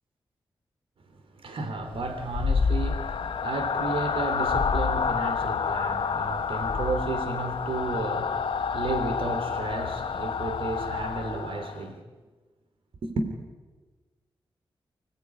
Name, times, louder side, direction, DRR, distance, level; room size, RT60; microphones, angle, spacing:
voice 1, 1.4-12.0 13.0-13.3, right 3 dB, 75° right, 3.5 m, -33 dB
sound 1, 1.9-11.9, left 5 dB, 70° left, 1.2 m, -28 dB
26.0 x 19.0 x 9.8 m
cardioid pair, 50°, 9 cm